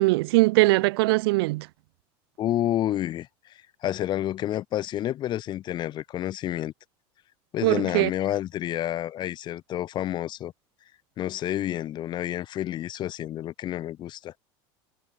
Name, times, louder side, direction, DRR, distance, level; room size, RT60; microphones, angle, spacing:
voice 1, 0.0-1.7 7.6-8.1, right 22 dB, 85° right, 0.4 m, -21 dB
voice 2, 2.4-3.5 3.8-6.7 7.5-10.5 11.2-14.3, left 12 dB, 40° left, 0.5 m, -29 dB
supercardioid pair, 125°, 12 cm